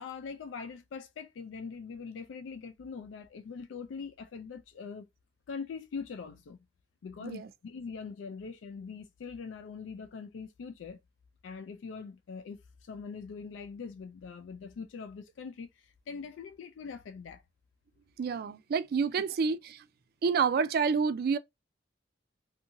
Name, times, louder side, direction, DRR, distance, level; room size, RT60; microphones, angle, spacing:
voice 1, 0.0-5.1 5.5-6.6 7.0-11.0 11.4-17.4, left 5 dB, 90° left, 0.3 m, -42 dB
voice 2, 18.2-19.8 20.2-21.4, right 5 dB, 55° right, 0.3 m, -28 dB
2.7 x 2.6 x 2.5 m
head